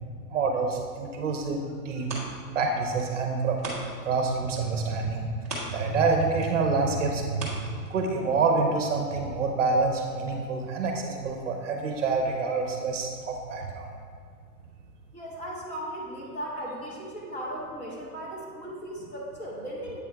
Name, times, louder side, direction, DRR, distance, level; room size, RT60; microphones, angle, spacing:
voice 1, 0.3-2.1 2.5-3.6 4.0-5.3 5.7-13.9, right 4 dB, 50° right, 3 dB, 0.8 m, -27 dB
sound 1, 1.3-4.2 4.5-8.3 8.8-8.9, right 2 dB, 10° right, 0.5 m, -40 dB
voice 2, 15.1-20.0, equal, 25° left, -5 dB, 1.4 m, -37 dB
8.2 x 3.6 x 4.5 m, 2.2 s
hypercardioid pair, 160°, 47 cm